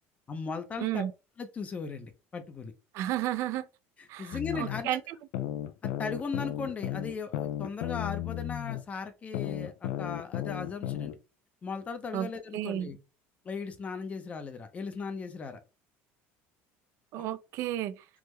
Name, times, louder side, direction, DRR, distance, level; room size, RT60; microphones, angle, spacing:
voice 1, 0.3-1.0 1.4-2.7 4.0-5.0 6.0-11.2 11.6-13.0 13.4-15.6 17.2-17.3, left 5 dB, 25° left, 0.5 m, -37 dB
voice 2, 0.8-1.1 2.9-3.7 4.1-5.2 12.1-12.9 17.1-18.0, right 13 dB, 60° right, 0.3 m, -33 dB
sound 1, 4.3-4.8 5.3-8.8 9.3-11.2, left 12 dB, 85° left, 0.3 m, -34 dB
3.5 x 2.1 x 3.1 m
cardioid pair, 135°, 5 cm